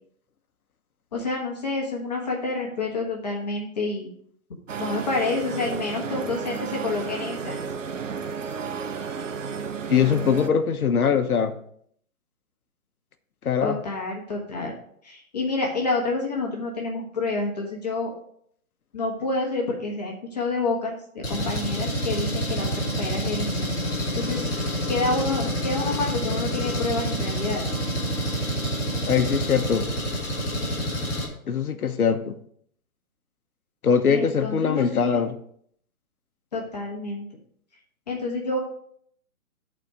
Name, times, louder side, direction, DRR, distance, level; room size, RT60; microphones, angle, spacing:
voice 1, 1.1-4.1 4.8-7.6 13.6-14.7 15.0-18.1 18.9-23.7 24.1-24.4 24.9-27.6 34.1-35.2 36.5-37.2 38.1-38.6, left 3 dB, 30° left, -1 dB, 1.4 m, -28 dB
sound 1, 4.7-10.5, right 6 dB, 60° right, 0.8 m, -32 dB
voice 2, 9.9-11.6 13.4-13.8 29.1-29.9 31.5-32.3 33.8-35.4, left 7 dB, 80° left, 8 dB, 1.1 m, -22 dB
Engine, 21.2-31.3, equal, 10° left, 1.8 m, -28 dB
11.0 x 4.3 x 4.9 m, 0.64 s
hypercardioid pair, 180°, 43 cm